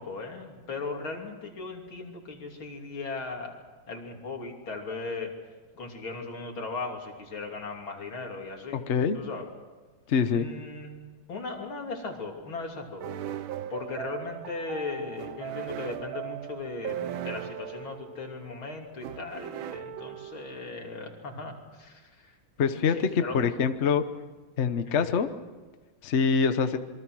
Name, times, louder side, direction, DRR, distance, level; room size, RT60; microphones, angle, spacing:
voice 1, 0.0-3.6 3.9-5.3 5.8-8.8 9.1-9.5 10.3-13.0 13.7-22.4 22.6-23.4 24.9-25.0, left 3 dB, 80° left, 1 dB, 3.9 m, -37 dB
voice 2, 8.7-9.2 10.1-10.5 22.6-24.0 24.6-25.3 26.0-26.8, left 6 dB, 45° left, 9 dB, 1.1 m, -25 dB
sound 1, 13.0-20.7, right 11 dB, 80° right, 1.7 m, -38 dB
27.0 x 23.5 x 6.3 m, 1.3 s
omnidirectional pair, 2.2 m